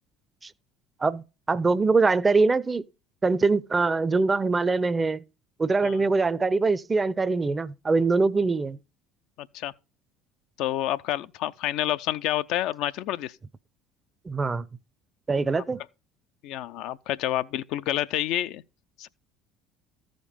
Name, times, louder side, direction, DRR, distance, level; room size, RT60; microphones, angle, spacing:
voice 1, 1.0-2.8 3.2-5.2 5.6-8.8 14.3-14.7 15.3-15.8, right 3 dB, 25° right, 0.5 m, -23 dB
voice 2, 9.4-9.7 10.6-13.4 16.4-18.6 19.0-19.1, left 13 dB, 65° left, 0.4 m, -29 dB
14.0 x 5.2 x 5.1 m
hypercardioid pair, 60°, 0 cm